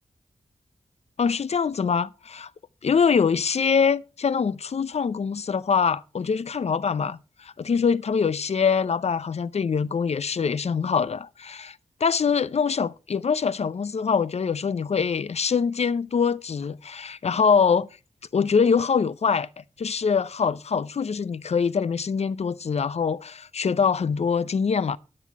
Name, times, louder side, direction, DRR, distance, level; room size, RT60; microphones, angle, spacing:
voice 1, 1.2-2.5 2.8-17.9 18.3-19.5 19.8-25.0, left 6 dB, 60° left, 0.5 m, -24 dB
10.0 x 8.6 x 4.6 m
wide cardioid pair, 75°, 13 cm